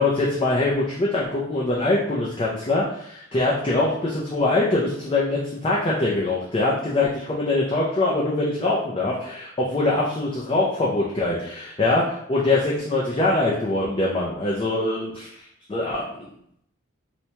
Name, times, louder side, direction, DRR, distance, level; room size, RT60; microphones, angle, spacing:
voice 1, 0.0-15.3 15.7-16.3, left 2 dB, 25° left, -5 dB, 0.4 m, -23 dB
4.2 x 2.2 x 2.8 m, 0.71 s
head